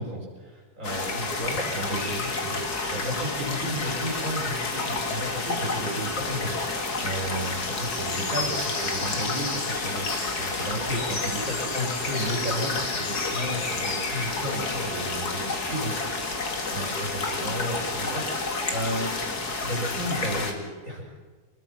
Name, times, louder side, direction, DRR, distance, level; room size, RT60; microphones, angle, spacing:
voice 1, 0.0-6.6 7.0-16.2 16.5-19.1 19.6-21.1, equal, 50° right, -1 dB, 6.5 m, -33 dB
sound 1, 0.8-20.5, left 3 dB, 70° left, 2.7 m, -29 dB
25.5 x 20.5 x 5.9 m, 1.4 s
omnidirectional pair, 1.7 m